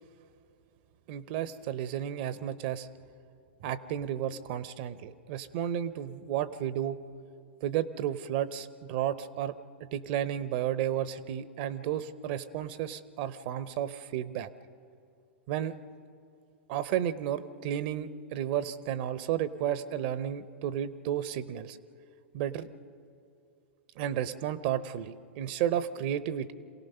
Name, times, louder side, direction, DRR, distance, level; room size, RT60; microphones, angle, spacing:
voice 1, 1.1-2.9 3.6-7.0 7.6-14.5 15.5-15.7 16.7-21.8 22.3-22.7 24.0-26.5, right 10 dB, 50° right, 15 dB, 0.8 m, -32 dB
27.5 x 17.5 x 5.6 m, 2.8 s
figure-of-eight pair, 100°, 6 cm